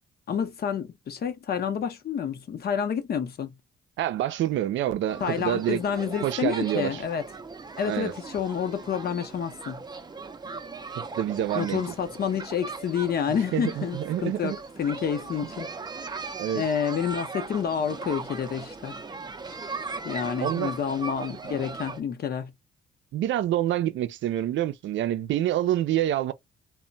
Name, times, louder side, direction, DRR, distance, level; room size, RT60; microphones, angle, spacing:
voice 1, 0.3-3.5 5.2-7.2 7.8-9.8 11.5-15.7 16.6-19.0 19.5-19.6 20.0-22.5, left 7 dB, 50° left, 0.7 m, -29 dB
voice 2, 4.0-5.8 6.2-7.0 7.8-8.1 11.0-11.8 13.5-14.6 16.4-16.6 20.4-20.7 21.2-21.3 23.1-26.3, right 12 dB, 70° right, 0.5 m, -27 dB
sound 1, 5.1-22.0, right 4 dB, 20° right, 0.5 m, -38 dB
2.2 x 2.2 x 3.8 m
cardioid pair, 90°, 20 cm